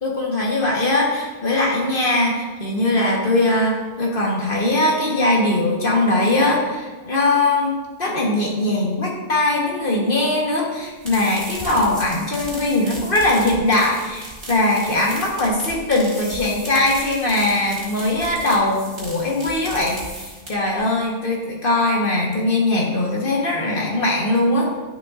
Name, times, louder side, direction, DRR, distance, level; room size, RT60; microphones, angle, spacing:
voice 1, 0.0-24.7, left 2 dB, 55° left, -2 dB, 1.5 m, -20 dB
sound 1, 10.8-20.8, right 1 dB, 55° right, 2.1 m, -36 dB
11.0 x 6.8 x 2.5 m, 1.3 s
omnidirectional pair, 1.1 m